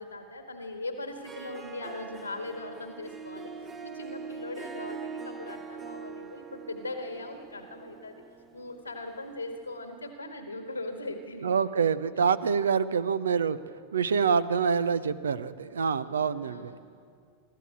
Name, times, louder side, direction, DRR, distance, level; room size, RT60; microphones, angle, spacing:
voice 1, 0.0-8.2 8.5-11.7 12.1-12.4 16.0-16.8, left 2 dB, 85° left, 5 dB, 1.6 m, -40 dB
Harp, 1.1-9.7, right 5 dB, 20° right, 1.1 m, -43 dB
voice 2, 11.4-13.6 13.9-16.7, right 6 dB, 70° right, 17 dB, 0.7 m, -26 dB
24.5 x 14.0 x 8.7 m, 2.3 s
figure-of-eight pair, 90°, 0 cm